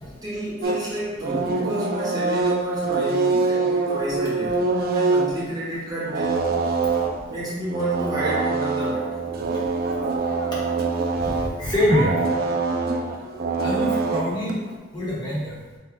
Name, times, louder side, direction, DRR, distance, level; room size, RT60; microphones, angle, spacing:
voice 1, 0.2-6.5 7.3-9.2, right 1 dB, 20° right, -8 dB, 0.9 m, -30 dB
sound 1, 0.6-14.8, right 3 dB, 50° right, 0.4 m, -24 dB
voice 2, 11.6-12.1 13.6-14.6 14.9-15.5, left 1 dB, 20° left, -7 dB, 1.0 m, -24 dB
5.9 x 2.3 x 3.0 m, 1.3 s
head